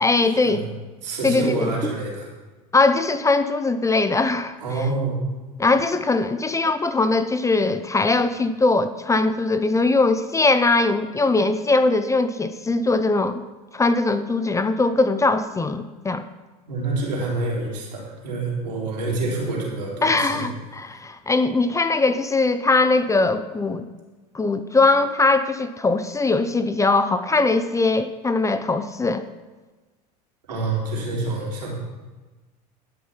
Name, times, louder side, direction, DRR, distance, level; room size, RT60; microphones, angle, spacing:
voice 1, 0.0-0.6 1.2-1.7 2.7-4.6 5.6-13.4 13.7-16.2 20.0-23.8 24.3-29.2, left 3 dB, 15° left, 11 dB, 0.6 m, -21 dB
voice 2, 1.0-2.3 4.6-5.2 16.7-20.4 30.5-31.7, right 3 dB, 85° right, -4 dB, 3.8 m, -27 dB
11.5 x 6.3 x 5.7 m, 1.2 s
hypercardioid pair, 85°, 21 cm